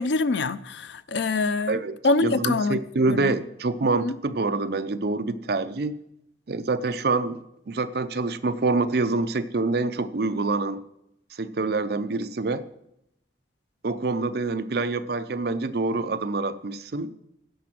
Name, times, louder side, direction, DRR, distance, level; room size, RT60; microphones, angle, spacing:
voice 1, 0.0-1.8 2.0-2.8 3.1-3.3 3.9-4.1, left 3 dB, 70° left, 0.5 m, -25 dB
voice 2, 1.7-6.0 6.5-7.4 7.7-10.8 11.3-12.6 13.8-17.1, right 3 dB, 55° right, 0.6 m, -26 dB
16.0 x 6.1 x 6.0 m
head